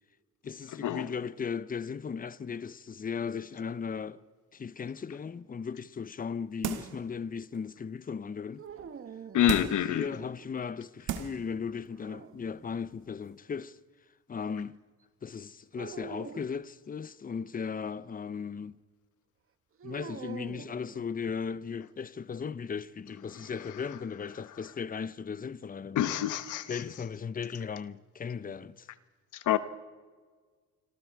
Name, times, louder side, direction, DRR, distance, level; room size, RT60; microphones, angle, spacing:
voice 1, 0.4-4.2 4.5-8.6 9.4-13.8 14.3-14.7 15.2-18.8 19.8-26.1 26.7-28.9, left 6 dB, 30° left, 0.8 m, -37 dB
sound 1, 6.6-7.1 7.5-7.6 9.5-9.9 10.6-10.7 11.1-11.5 11.9-12.0, right 10 dB, 90° right, 1.7 m, -35 dB
sound 2, 8.6-10.1 11.8-12.9 15.8-16.6 19.8-21.5, right 6 dB, 45° right, 1.3 m, -46 dB
voice 2, 9.3-10.1 25.9-26.8 29.3-29.6, left 12 dB, 75° left, 1.2 m, -27 dB
27.0 x 25.0 x 4.8 m
cardioid pair, 90°, 30 cm